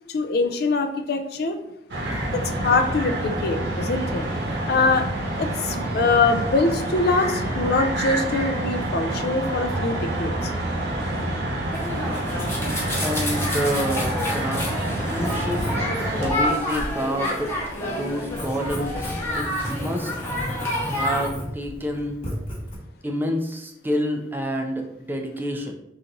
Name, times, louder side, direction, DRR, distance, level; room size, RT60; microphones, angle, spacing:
voice 1, 0.1-1.6 2.3-4.2 4.7-5.1 5.4-10.5, left 3 dB, 60° left, 6 dB, 0.4 m, -23 dB
sound 1, 1.9-16.3, right 1 dB, 70° right, 0.9 m, -27 dB
sound 2, 11.7-21.3, left 1 dB, 15° left, 0.9 m, -29 dB
voice 2, 13.0-15.6 16.1-17.5 17.9-20.1 20.9-22.2 23.0-25.7, equal, 10° right, 3 dB, 0.4 m, -28 dB
Writing, 15.1-22.7, equal, 30° left, 1.1 m, -34 dB
3.9 x 2.8 x 3.8 m, 0.82 s
head